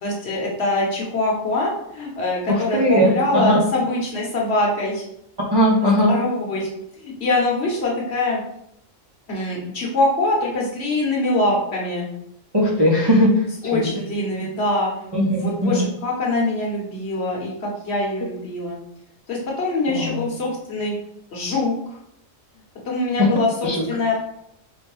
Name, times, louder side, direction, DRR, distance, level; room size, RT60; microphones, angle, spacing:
voice 1, 0.0-5.0 5.8-6.7 7.0-8.4 9.3-12.1 13.6-18.8 19.3-20.9 21.3-22.0 22.8-24.1, left 2 dB, 55° left, -3 dB, 1.1 m, -23 dB
voice 2, 2.7-3.6 5.5-6.1 12.5-13.3 15.1-15.8 19.9-20.3 23.6-23.8, equal, 40° right, -6 dB, 0.3 m, -18 dB
4.4 x 2.2 x 3.0 m, 0.75 s
omnidirectional pair, 1.4 m